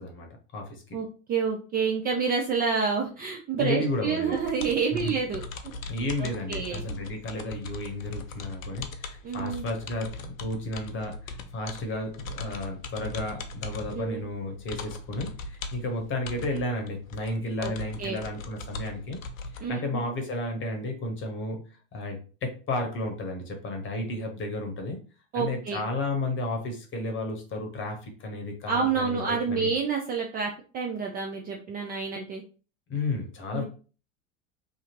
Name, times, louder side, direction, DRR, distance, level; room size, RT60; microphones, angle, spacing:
voice 1, 0.0-0.8 3.6-4.4 5.0-5.1 5.8-19.2 19.7-21.6 21.9-25.0 25.3-29.7 32.9-33.6, left 2 dB, 30° left, 3 dB, 0.9 m, -33 dB
voice 2, 0.9-5.4 6.2-6.8 9.2-9.7 13.9-14.2 17.6-17.7 18.0-18.2 19.6-20.0 25.3-25.8 28.7-32.4 33.5-33.6, right 5 dB, 25° right, 1 dB, 0.3 m, -28 dB
sound 1, 4.3-19.6, left 3 dB, 85° left, 0.5 m, -40 dB
2.8 x 2.5 x 2.8 m, 0.37 s
hypercardioid pair, 85°, 40 cm